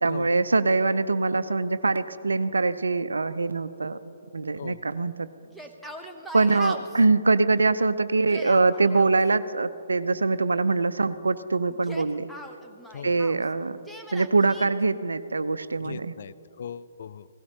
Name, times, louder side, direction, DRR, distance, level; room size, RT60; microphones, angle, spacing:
voice 1, 0.0-4.0 4.3-5.3 6.3-12.3 13.0-13.8 14.1-16.1, right 3 dB, 75° right, 15 dB, 0.5 m, -23 dB
Yell, 5.5-7.0 8.1-9.1 11.7-13.4 13.9-14.7, left 1 dB, ahead, 0.7 m, -41 dB
voice 2, 15.8-17.3, left 7 dB, 50° left, 16 dB, 0.3 m, -39 dB
17.5 x 16.5 x 2.8 m, 2.9 s
figure-of-eight pair, 130°, 0 cm